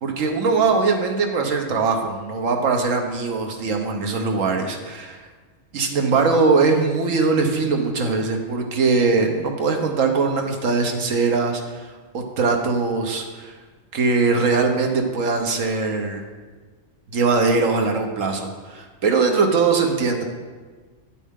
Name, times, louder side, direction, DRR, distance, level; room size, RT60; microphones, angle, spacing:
voice 1, 0.0-5.3 5.7-11.9 12.1-13.5 13.9-16.2 17.1-20.2, right 4 dB, 90° right, 3 dB, 1.4 m, -21 dB
9.0 x 8.3 x 3.7 m, 1.4 s
omnidirectional pair, 1.3 m